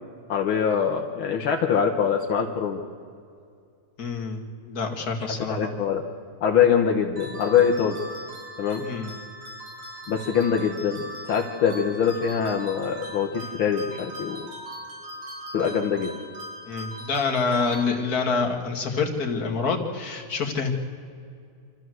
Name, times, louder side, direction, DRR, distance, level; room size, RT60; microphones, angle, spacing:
voice 1, 0.3-2.8 5.5-6.0 6.4-8.0 8.6-8.8 10.1-14.5 15.5-16.1, left 7 dB, 70° left, 1 dB, 2.0 m, -23 dB
voice 2, 4.0-5.7 8.8-9.1 16.7-20.7, left 4 dB, 45° left, 1 dB, 2.6 m, -27 dB
sound 1, 7.2-18.4, equal, 80° right, 4.5 m, -40 dB
27.0 x 13.5 x 7.8 m, 2.3 s
omnidirectional pair, 2.4 m